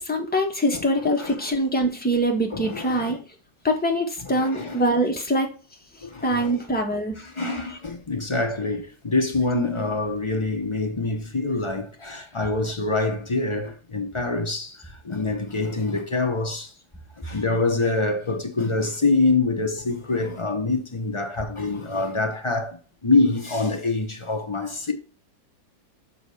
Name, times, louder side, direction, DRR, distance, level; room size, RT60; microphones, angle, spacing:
voice 1, 0.0-3.2 3.6-5.5 6.2-7.1, equal, 5° left, 1.1 m, -23 dB
voice 2, 1.2-1.5 2.5-3.2 4.3-4.8 6.0-6.6 7.2-16.7 17.2-22.8 23.0-24.9, left 3 dB, 40° left, 0.4 m, -25 dB
6.4 x 4.2 x 4.8 m
omnidirectional pair, 2.0 m